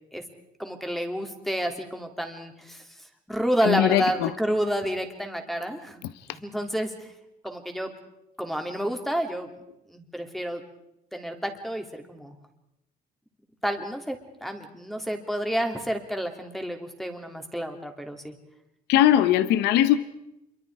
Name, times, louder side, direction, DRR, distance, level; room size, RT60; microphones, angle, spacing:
voice 1, 0.6-2.8 3.3-6.0 6.3-7.1 7.4-7.9 8.4-9.5 9.9-10.6 11.1-12.3 13.6-14.2 14.4-18.3, equal, ahead, 4 dB, 3.0 m, -29 dB
voice 2, 3.6-4.3 18.9-20.0, left 12 dB, 85° left, 14 dB, 0.9 m, -20 dB
27.5 x 23.5 x 4.8 m, 0.85 s
cardioid pair, 110°, 17 cm